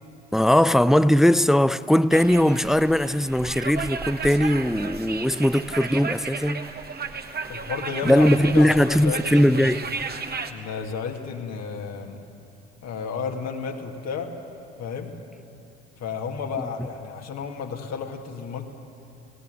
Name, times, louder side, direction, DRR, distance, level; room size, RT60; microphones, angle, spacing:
voice 1, 0.3-6.7 8.0-9.8, equal, ahead, 0.4 m, -19 dB
sound 1, 2.1-10.5, right 4 dB, 30° right, 1.5 m, -34 dB
voice 2, 7.5-9.7 10.5-12.2 12.8-14.3 14.8-15.1 16.0-18.7, left 6 dB, 50° left, 2.1 m, -32 dB
19.0 x 17.5 x 9.1 m
figure-of-eight pair, 55°, 33 cm